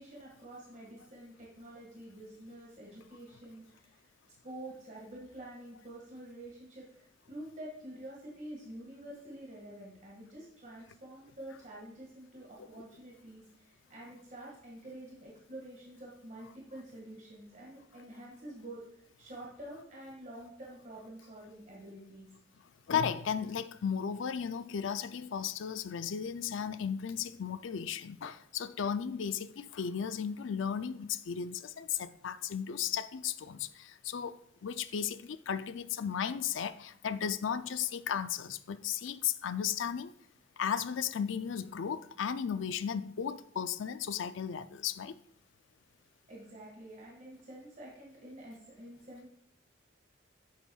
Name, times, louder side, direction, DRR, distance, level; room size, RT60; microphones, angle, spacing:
voice 1, 0.0-4.0 4.4-22.3 46.3-49.3, right 1 dB, 40° right, 1.9 m, -48 dB
voice 2, 22.9-40.1 40.6-45.2, left 7 dB, 70° left, 0.4 m, -35 dB
9.8 x 7.3 x 2.4 m
head